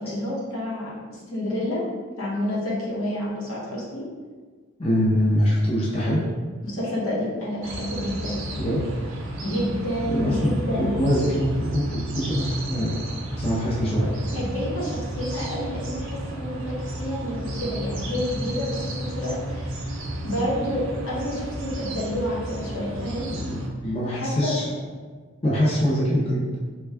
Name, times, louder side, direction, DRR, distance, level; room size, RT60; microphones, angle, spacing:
voice 1, 0.0-1.8 2.2-4.0 6.6-8.4 9.4-10.9 14.3-19.7 20.2-23.3 24.1-24.5, equal, 70° left, -5 dB, 0.9 m, -29 dB
voice 2, 4.8-6.2 8.6-8.8 10.1-10.5 10.8-14.3 23.3-24.7 25.4-26.5, equal, 25° left, -7 dB, 0.5 m, -24 dB
sound 1, 7.6-23.7, right 1 dB, 65° right, 0.5 m, -32 dB
3.3 x 2.3 x 3.4 m, 1.4 s
head